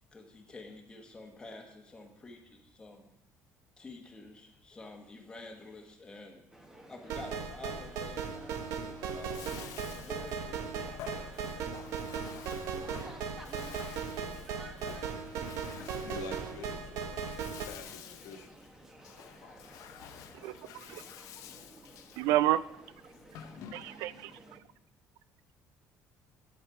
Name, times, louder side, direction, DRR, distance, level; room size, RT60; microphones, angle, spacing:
voice 1, 0.1-3.1 3.8-6.4 6.9-8.4 8.7-9.5 9.8-11.1, left 2 dB, 15° left, 3 dB, 1.1 m, -49 dB
sound 1, 6.5-24.6, right 1 dB, 10° right, 0.9 m, -54 dB
sound 2, 7.1-17.6, right 6 dB, 70° right, 0.9 m, -38 dB
Bathtub (filling or washing), 9.1-24.3, left 10 dB, 65° left, 0.6 m, -51 dB
voice 2, 16.0-17.3 17.6-18.5, left 5 dB, 80° left, 4 dB, 1.3 m, -46 dB
voice 3, 22.2-22.6 23.7-24.3, right 14 dB, 90° right, 17 dB, 0.4 m, -28 dB
8.2 x 8.0 x 4.8 m, 0.83 s
cardioid pair, 170°, 6 cm